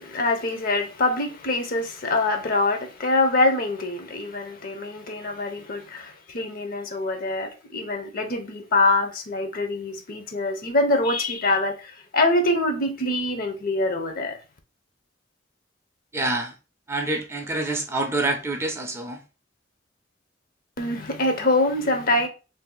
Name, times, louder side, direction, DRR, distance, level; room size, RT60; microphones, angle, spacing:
voice 1, 0.0-14.4 20.8-22.3, left 2 dB, 50° left, 0.6 m, -24 dB
voice 2, 16.1-16.5 16.9-19.2, right 2 dB, 15° right, 0.5 m, -27 dB
2.6 x 2.5 x 3.7 m
head